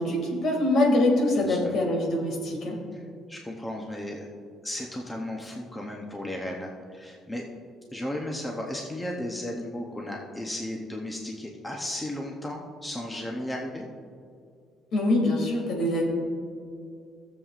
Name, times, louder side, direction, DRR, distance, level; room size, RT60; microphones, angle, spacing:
voice 1, 0.0-2.8 14.9-16.1, left 1 dB, 55° left, 1 dB, 2.2 m, -24 dB
voice 2, 1.3-1.7 2.9-3.0 3.3-4.3 4.6-7.4 7.9-13.9, left 1 dB, 10° left, 0 dB, 0.7 m, -35 dB
17.5 x 7.3 x 2.5 m, 2.3 s
cardioid pair, 150°, 0 cm